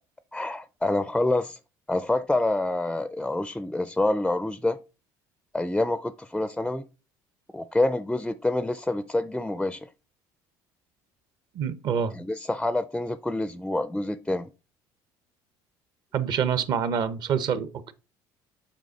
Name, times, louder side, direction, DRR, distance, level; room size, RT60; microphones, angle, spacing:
voice 1, 0.3-1.6 1.9-4.8 5.5-6.8 7.5-9.9 12.1-14.5, left 2 dB, 5° left, 0.4 m, -27 dB
voice 2, 11.5-12.1 16.1-17.9, right 7 dB, 55° right, 0.8 m, -26 dB
7.6 x 5.0 x 4.1 m
cardioid pair, 115°, 9 cm